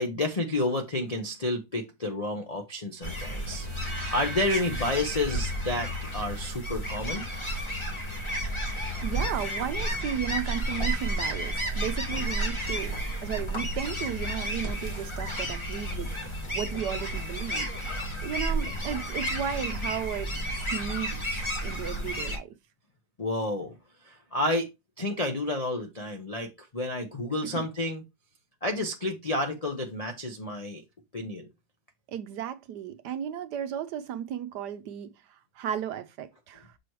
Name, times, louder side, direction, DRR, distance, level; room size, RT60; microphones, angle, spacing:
voice 1, 0.0-7.3 23.2-23.8 24.0-24.7 25.0-28.0 28.6-30.8 31.1-31.5, left 1 dB, 80° left, 0.3 m, -30 dB
sound 1, 3.0-22.4, equal, 20° left, 1.1 m, -32 dB
sound 2, 3.5-6.7, right 5 dB, 20° right, 0.8 m, -45 dB
voice 2, 9.0-17.7 18.2-22.5 27.4-27.7 32.1-36.7, right 9 dB, 70° right, 1.1 m, -35 dB
6.9 x 3.1 x 4.6 m
omnidirectional pair, 2.1 m